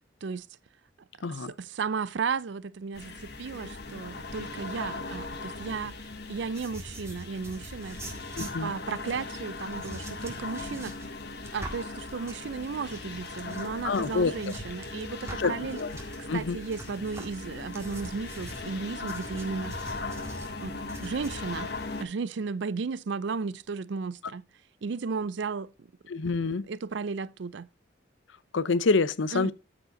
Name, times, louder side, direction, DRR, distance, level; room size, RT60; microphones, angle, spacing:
voice 1, 1.2-5.9 6.3-8.0 8.4-10.9 11.5-15.8 16.3-19.7 20.6-21.7 22.0-24.4 24.8-25.9 26.7-27.7 29.3-29.5, right 5 dB, 70° right, 0.4 m, -34 dB
sound 1, 2.9-22.0, left 3 dB, 55° left, 1.4 m, -39 dB
sound 2, 6.5-16.2 16.7-21.4, right 1 dB, 15° right, 1.8 m, -44 dB
voice 2, 8.3-8.7 13.8-14.3 15.4-15.9 16.3-16.6 26.1-26.7 28.5-29.5, left 4 dB, 80° left, 0.6 m, -27 dB
13.0 x 4.9 x 3.9 m
head